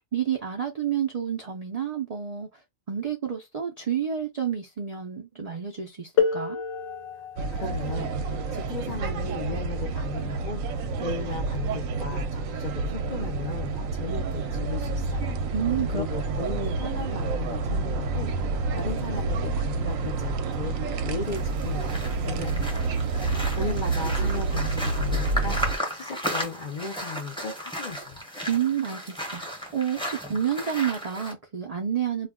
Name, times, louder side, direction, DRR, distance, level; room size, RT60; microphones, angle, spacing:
voice 1, 0.1-2.5 2.9-6.6 15.5-16.0 28.5-29.4 29.7-32.3, right 8 dB, 65° right, 0.4 m, -29 dB
sound 1, 6.2-11.6 12.7-12.8 13.6-13.8, left 6 dB, 75° left, 0.9 m, -32 dB
voice 2, 7.4-15.4 15.9-20.8 21.0-22.9 23.5-28.2, left 4 dB, 55° left, 0.5 m, -36 dB
sound 2, 7.4-25.8, right 3 dB, 80° right, 1.0 m, -29 dB
sound 3, 21.2-31.3, equal, 5° left, 0.6 m, -35 dB
2.4 x 2.2 x 3.5 m
omnidirectional pair, 1.4 m